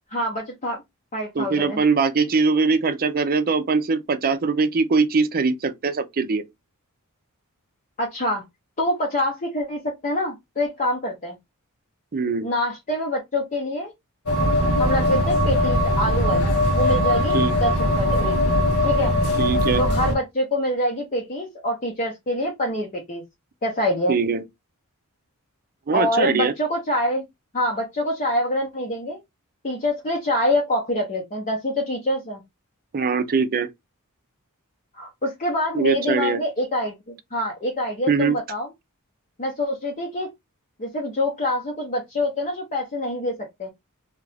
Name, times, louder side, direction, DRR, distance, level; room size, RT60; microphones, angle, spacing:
voice 1, 0.1-0.8 1.1-1.8 8.0-8.4 8.8-11.4 12.4-13.9 14.8-16.5 16.7-18.3 18.8-19.2 19.8-23.2 23.6-24.2 25.9-27.2 27.5-29.2 29.6-32.4 35.0-38.7 39.4-40.3 40.8-43.7, left 1 dB, 35° left, 0.7 m, -25 dB
voice 2, 1.4-6.4 12.1-12.5 17.3-17.6 19.4-19.8 24.1-24.4 25.9-26.5 32.9-33.7 35.7-36.4 38.1-38.4, right 4 dB, 40° right, 0.5 m, -22 dB
sound 1, 14.3-20.1, left 1 dB, 85° left, 1.2 m, -20 dB
2.9 x 2.4 x 3.2 m
head